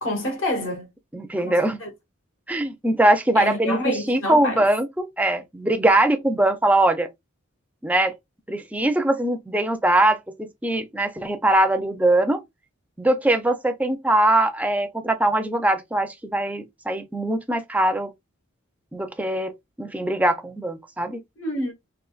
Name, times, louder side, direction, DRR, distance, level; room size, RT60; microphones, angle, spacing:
voice 1, 0.0-0.9 1.4-1.9 3.3-4.6 21.4-21.7, left 1 dB, 75° left, 1.5 m, -28 dB
voice 2, 1.1-1.8 2.5-7.1 7.8-8.1 8.5-12.4 13.0-18.1 18.9-21.2, right 1 dB, 5° right, 0.4 m, -22 dB
3.8 x 2.4 x 2.4 m
head